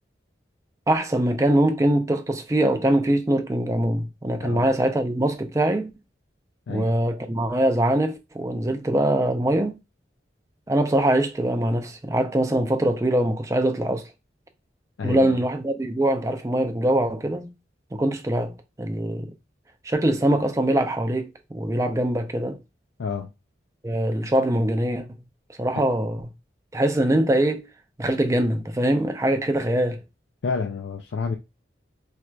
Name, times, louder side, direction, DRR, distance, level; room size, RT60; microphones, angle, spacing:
voice 1, 0.9-5.9 6.7-9.8 10.7-14.1 15.0-17.5 17.9-19.3 19.8-22.6 23.8-25.1 25.6-26.3 26.7-27.7 28.0-30.0, right 1 dB, 15° right, 0.4 m, -23 dB
voice 2, 15.0-15.4 23.0-23.3 25.7-25.8 30.4-31.4, left 5 dB, 80° left, 0.4 m, -29 dB
4.3 x 2.4 x 2.2 m
head